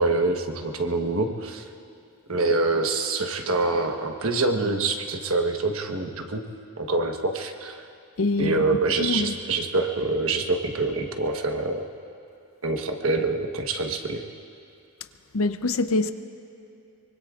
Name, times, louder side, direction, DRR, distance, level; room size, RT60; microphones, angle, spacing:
voice 1, 0.0-1.6 2.3-6.4 6.8-7.8 8.4-11.9 12.6-14.2, right 3 dB, 70° right, 3 dB, 1.2 m, -25 dB
voice 2, 8.2-8.6 9.0-9.4 15.3-16.1, left 3 dB, 70° left, 10 dB, 0.7 m, -24 dB
24.5 x 24.5 x 2.5 m, 2.8 s
head